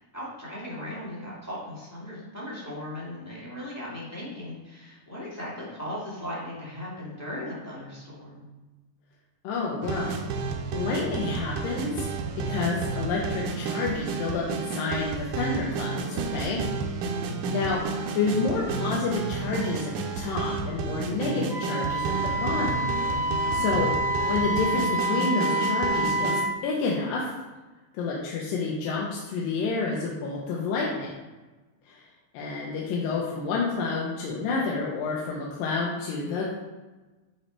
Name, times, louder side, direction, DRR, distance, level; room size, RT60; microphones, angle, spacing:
voice 1, 0.1-8.4 17.1-17.5 23.4-23.6, left 1 dB, 10° left, -7 dB, 1.0 m, -38 dB
voice 2, 9.4-10.2 10.7-12.1 12.5-16.6 17.5-22.8 23.5-23.9 24.3-26.3 26.6-27.3 27.9-31.1 31.9-32.0 32.3-36.5, left 4 dB, 85° left, -3 dB, 2.6 m, -29 dB
sound 1, 9.8-26.4, right 4 dB, 80° right, 2.2 m, -31 dB
Wind instrument woodwind instrument, 21.5-26.5, right 1 dB, 30° left, 1.2 m, -27 dB
8.6 x 3.2 x 4.5 m, 1.2 s
omnidirectional pair, 3.9 m